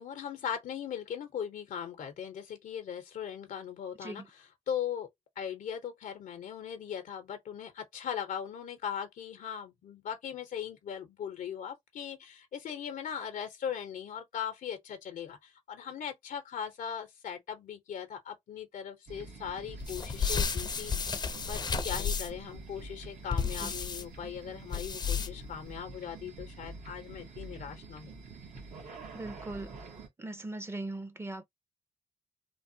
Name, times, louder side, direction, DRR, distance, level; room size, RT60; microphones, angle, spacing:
voice 1, 0.0-5.1 5.4-28.1, left 8 dB, 85° left, 0.6 m, -39 dB
sound 1, 19.1-30.1, right 3 dB, 75° right, 1.1 m, -47 dB
sound 2, 19.8-22.5 23.3-24.0 24.7-25.5, left 5 dB, 35° left, 0.5 m, -32 dB
voice 2, 29.1-29.8 30.2-31.4, right 2 dB, 20° right, 0.5 m, -39 dB
3.3 x 2.1 x 2.6 m
cardioid pair, 105°, 13 cm